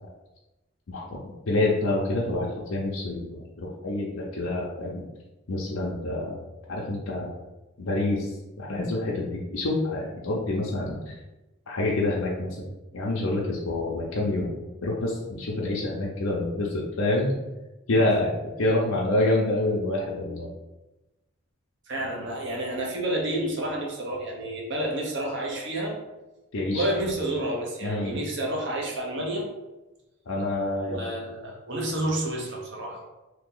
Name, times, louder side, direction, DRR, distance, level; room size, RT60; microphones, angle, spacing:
voice 1, 1.5-3.3 3.6-5.0 5.5-6.4 6.7-7.4 7.8-8.3 8.6-11.1 11.7-14.5 14.8-17.3 17.9-20.5 26.5-27.1 27.8-28.1 30.3-31.0, left 2 dB, 90° left, -4 dB, 0.7 m, -27 dB
voice 2, 21.9-26.0 26.7-29.5 30.8-33.0, right 1 dB, 60° right, -2 dB, 0.9 m, -30 dB
2.9 x 2.8 x 3.8 m, 1.0 s
head